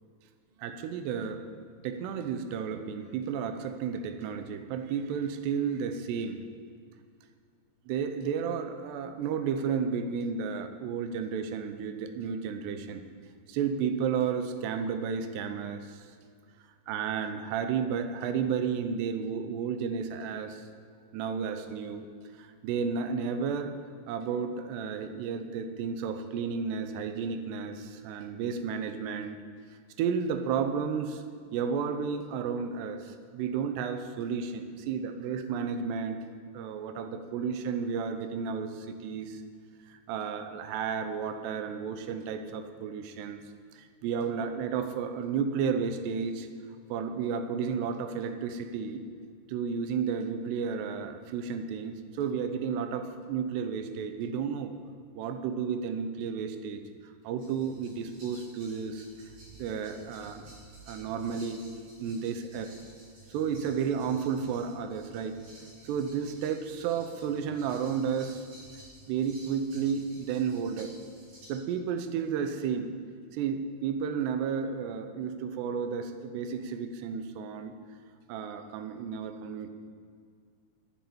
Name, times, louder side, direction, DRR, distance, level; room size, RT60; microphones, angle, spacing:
voice 1, 0.6-1.5 1.8-6.4 7.9-13.0 13.5-16.1 16.9-20.7 21.1-22.1 22.4-23.8 24.1-29.4 30.0-31.2 31.5-36.2 36.5-39.4 39.9-43.4 43.7-46.5 46.9-49.1 49.5-54.7 55.1-56.8 57.2-59.1 59.6-60.4 60.9-61.6 62.0-62.7 63.3-65.4 65.8-68.5 69.1-70.9 71.5-72.9 73.3-77.7 78.3-79.7, right 6 dB, 80° right, 8 dB, 2.9 m, -32 dB
sound 1, 57.4-71.5, right 1 dB, 60° right, 5.3 m, -53 dB
9.3 x 9.2 x 8.7 m, 2.1 s
omnidirectional pair, 4.8 m